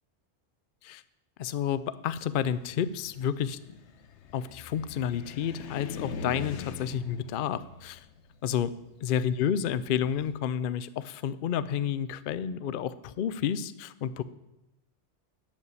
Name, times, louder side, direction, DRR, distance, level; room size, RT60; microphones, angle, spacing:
voice 1, 1.4-3.6 4.3-8.0 8.4-8.7 9.0-14.2, left 9 dB, 60° left, 15 dB, 0.6 m, -30 dB
Car, 2.1-10.3, left 4 dB, 80° left, 1.1 m, -43 dB
11.5 x 5.7 x 8.1 m, 0.93 s
omnidirectional pair, 1.2 m